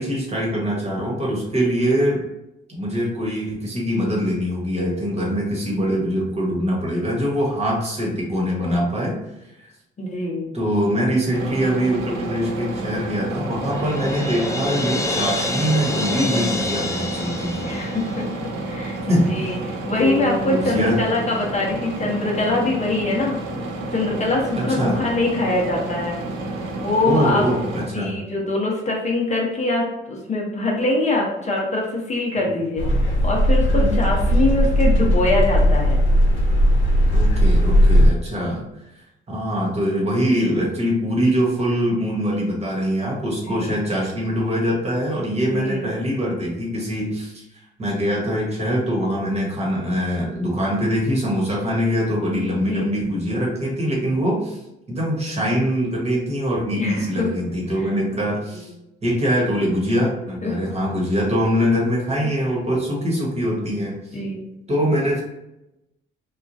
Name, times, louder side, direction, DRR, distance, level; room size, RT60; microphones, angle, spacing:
voice 1, 0.0-2.2 2.7-9.2 9.6-9.7 10.5-17.7 19.1-19.5 20.0-21.0 24.6-25.0 27.0-28.1 32.4-32.5 33.7-34.0 37.1-38.6 39.3-47.4 47.8-54.6 54.9-58.7 59.0-64.0 64.7-65.2, equal, 30° right, -3 dB, 1.2 m, -23 dB
voice 2, 10.0-10.5 17.6-18.3 18.6-23.4 23.9-26.2 26.8-27.4 27.7-32.8 33.2-36.0 38.4-38.6 43.4-43.8 45.5-45.9 52.6-52.9 56.8-57.3 57.8-57.9 58.5-58.6 60.4-60.6 64.1-64.4, left 2 dB, 35° left, -2 dB, 0.8 m, -23 dB
sound 1, 11.3-27.9, right 2 dB, 90° right, 0.6 m, -30 dB
Crash cymbal, 13.6-18.6, left 2 dB, 15° left, 0.4 m, -28 dB
sound 2, 32.8-38.1, equal, 70° left, 0.9 m, -17 dB
2.9 x 2.4 x 2.5 m, 0.90 s
cardioid pair, 90°, 20 cm